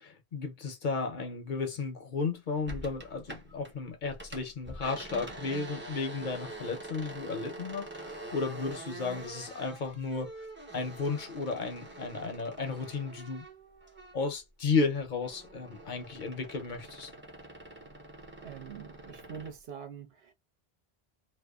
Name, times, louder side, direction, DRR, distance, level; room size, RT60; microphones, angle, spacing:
voice 1, 0.0-10.3 10.7-13.4 14.1-17.1, left 4 dB, 55° left, 0.7 m, -34 dB
sound 1, 2.7-3.7 4.0-14.4 14.7-19.6, right 2 dB, 15° right, 0.5 m, -46 dB
voice 2, 18.4-20.3, right 7 dB, 75° right, 1.0 m, -44 dB
2.8 x 2.1 x 2.2 m
omnidirectional pair, 1.0 m